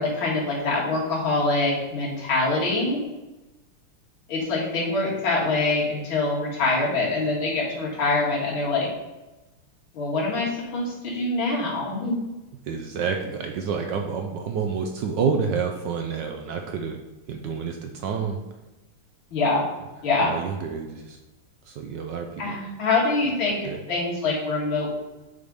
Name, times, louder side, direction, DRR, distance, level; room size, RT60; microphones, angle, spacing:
voice 1, 0.0-3.0 4.3-8.9 9.9-12.1 19.3-19.6 20.0-20.3 22.4-24.9, left 3 dB, 65° left, -4 dB, 2.6 m, -24 dB
voice 2, 12.7-17.0 17.3-18.4 20.2-21.2 21.6-22.6 23.6-23.8, right 6 dB, 70° right, 3 dB, 1.1 m, -28 dB
7.8 x 3.7 x 5.2 m, 1.1 s
omnidirectional pair, 2.4 m